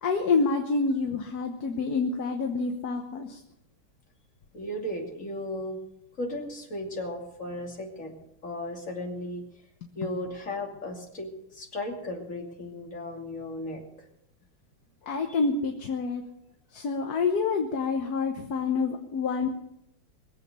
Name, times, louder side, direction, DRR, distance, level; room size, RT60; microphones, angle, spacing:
voice 1, 0.0-3.4 15.1-16.2 16.7-19.5, left 4 dB, 55° left, 4 dB, 1.5 m, -27 dB
voice 2, 4.5-5.8 6.2-8.1 8.4-9.5 9.9-13.8 15.3-15.4, left 1 dB, 40° left, 0 dB, 3.1 m, -35 dB
22.0 x 8.1 x 6.8 m, 0.78 s
omnidirectional pair, 2.2 m